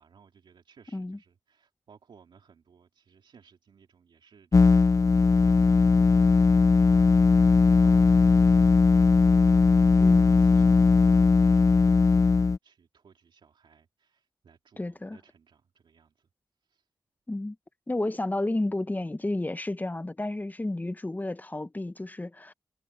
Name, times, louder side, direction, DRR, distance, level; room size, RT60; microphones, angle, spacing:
voice 1, 0.0-4.9 7.8-8.8 9.3-16.3 16.6-16.9, right 6 dB, 85° right, 3.3 m, -59 dB
sound 1, 4.5-12.6, left 4 dB, 40° left, 0.5 m, -19 dB
voice 2, 10.0-10.4 14.8-15.2 17.3-17.6 17.9-22.5, left 2 dB, 20° left, 1.0 m, -31 dB
cardioid pair, 65°, 8 cm